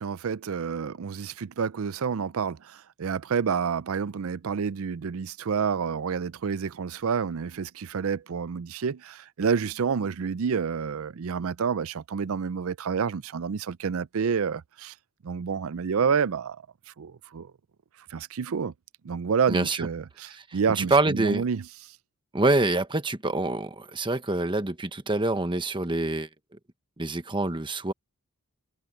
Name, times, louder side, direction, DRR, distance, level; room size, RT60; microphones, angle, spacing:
voice 1, 0.0-14.9 15.2-16.6 17.0-17.5 18.1-18.7 19.0-21.6, right 6 dB, 70° right, 0.5 m, -29 dB
voice 2, 19.5-19.9 20.3-21.4 22.3-26.3 27.0-27.9, right 2 dB, 20° right, 1.1 m, -26 dB
head